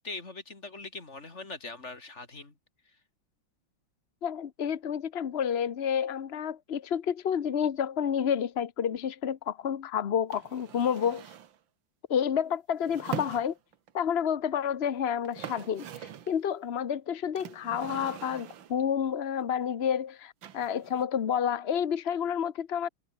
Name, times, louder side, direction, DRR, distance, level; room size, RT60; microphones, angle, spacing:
voice 1, 0.0-2.5, left 3 dB, 35° left, 3.4 m, -41 dB
voice 2, 4.2-11.2 12.1-13.5 13.9-22.9, left 8 dB, 50° left, 0.7 m, -29 dB
sound 1, 10.3-11.6 12.8-13.9 14.9-15.0 15.2-16.4 17.4-18.8 20.4-21.0, right 9 dB, 70° right, 2.0 m, -42 dB
omnidirectional pair, 2.2 m